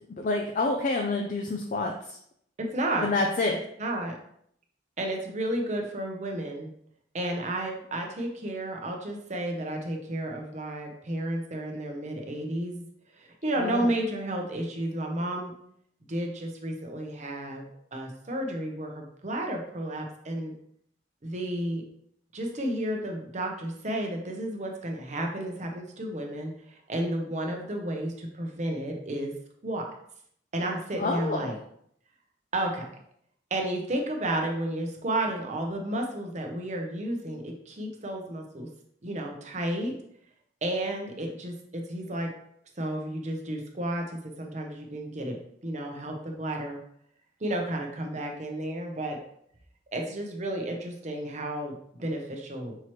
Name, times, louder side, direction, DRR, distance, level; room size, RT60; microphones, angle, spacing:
voice 1, 0.2-2.2 3.0-3.6 13.6-13.9 31.0-31.5, left 2 dB, 40° left, 2 dB, 0.4 m, -28 dB
voice 2, 2.6-3.1 3.8-4.1 5.0-6.7 7.1-12.9 13.1-15.5 16.1-20.5 21.2-21.8 22.3-29.3 29.6-29.8 30.5-31.6 32.5-32.9 33.5-38.7 39.0-39.9 40.6-42.3 42.8-46.8 47.4-49.2 49.9-52.8, right 1 dB, 35° right, 2 dB, 0.7 m, -32 dB
5.7 x 3.0 x 3.0 m, 0.69 s
head